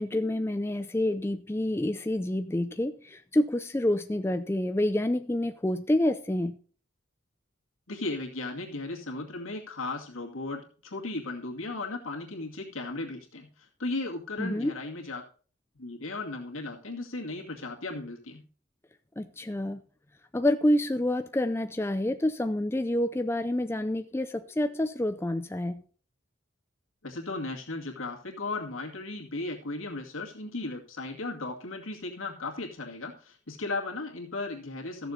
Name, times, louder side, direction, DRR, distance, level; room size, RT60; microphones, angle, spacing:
voice 1, 0.0-6.6 14.4-14.7 19.2-19.8 20.3-25.8, left 1 dB, 10° left, 0.4 m, -28 dB
voice 2, 7.9-15.2 15.7-18.4 27.0-35.1, left 2 dB, 85° left, 2.3 m, -36 dB
14.0 x 6.9 x 4.0 m
head